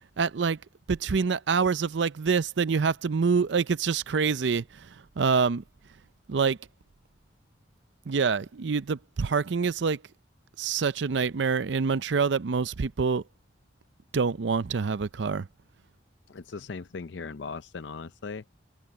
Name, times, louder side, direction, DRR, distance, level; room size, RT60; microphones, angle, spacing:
voice 1, 0.2-0.6 0.9-4.9 5.2-5.6 6.3-6.6 8.1-10.0 10.6-13.2 14.1-15.5, right 5 dB, 85° right, 0.5 m, -26 dB
voice 2, 16.3-18.5, left 4 dB, 85° left, 0.6 m, -38 dB
head